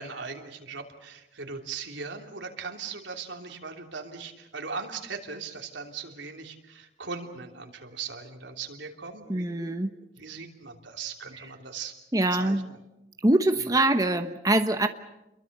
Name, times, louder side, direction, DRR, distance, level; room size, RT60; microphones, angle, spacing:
voice 1, 0.0-9.7 10.2-11.9 12.3-12.8 13.6-13.7, right 5 dB, 85° right, 3 dB, 3.1 m, -39 dB
voice 2, 9.3-9.9 12.1-12.7 13.2-14.9, right 1 dB, 20° right, 7 dB, 1.1 m, -23 dB
29.0 x 23.0 x 6.7 m, 0.92 s
head